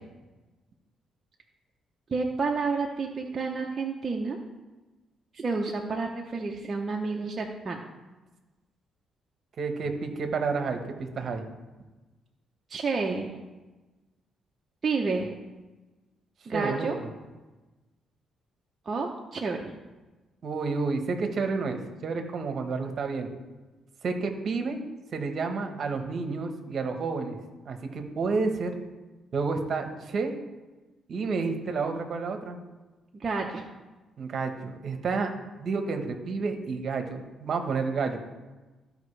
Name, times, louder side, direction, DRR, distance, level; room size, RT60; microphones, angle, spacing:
voice 1, 2.1-4.4 5.3-7.8 12.7-13.4 14.8-15.4 16.5-17.0 18.9-19.7 33.1-33.6, right 4 dB, 35° right, 0 dB, 0.8 m, -30 dB
voice 2, 9.6-11.5 16.5-17.1 20.4-23.3 24.0-24.8 25.1-27.4 27.6-28.7 29.3-30.3 31.1-32.6 34.2-35.3 35.6-38.2, right 4 dB, 55° right, 6 dB, 1.2 m, -30 dB
14.5 x 5.1 x 3.3 m, 1.2 s
cardioid pair, 90°, 0 cm